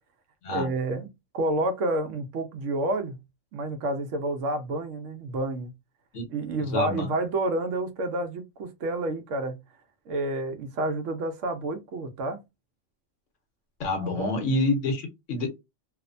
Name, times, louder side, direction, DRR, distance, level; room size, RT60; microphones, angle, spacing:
voice 1, 0.5-1.1 1.3-3.2 3.5-5.7 6.3-9.6 10.1-12.4 14.2-14.4, right 2 dB, 85° right, 1.0 m, -29 dB
voice 2, 6.7-7.1 13.8-15.6, left 2 dB, 80° left, 1.3 m, -27 dB
3.0 x 2.1 x 2.5 m
omnidirectional pair, 1.3 m